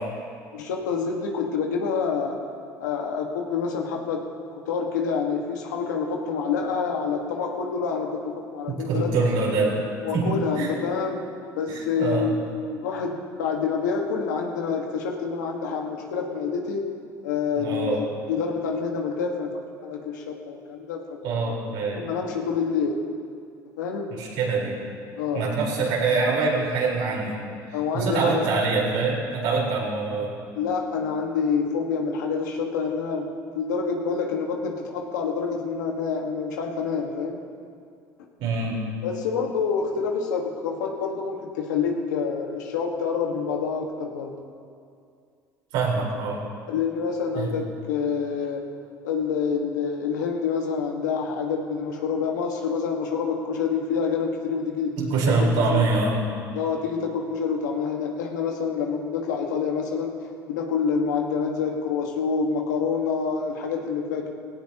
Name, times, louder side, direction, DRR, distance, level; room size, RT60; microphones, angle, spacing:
voice 1, 0.5-2.4 2.8-4.3 4.6-9.1 10.0-11.2 11.6-12.4 12.6-16.8 17.2-19.5 19.8-21.0 22.0-23.0 23.8-24.1 25.1-25.4 27.7-28.4 30.5-33.3 33.5-37.4 39.0-44.3 46.7-48.7 49.0-55.0 55.3-55.9 56.5-64.3, left 5 dB, 90° left, 1 dB, 1.7 m, -27 dB
voice 2, 8.7-9.8 10.1-10.7 11.7-12.3 17.5-18.0 21.2-22.1 24.1-24.8 25.3-27.4 27.9-30.4 38.4-38.8 45.7-46.4 47.3-47.5 55.0-56.1, right 4 dB, 75° right, -4 dB, 4.4 m, -24 dB
17.5 x 17.5 x 3.0 m, 2.3 s
hypercardioid pair, 75°, 9 cm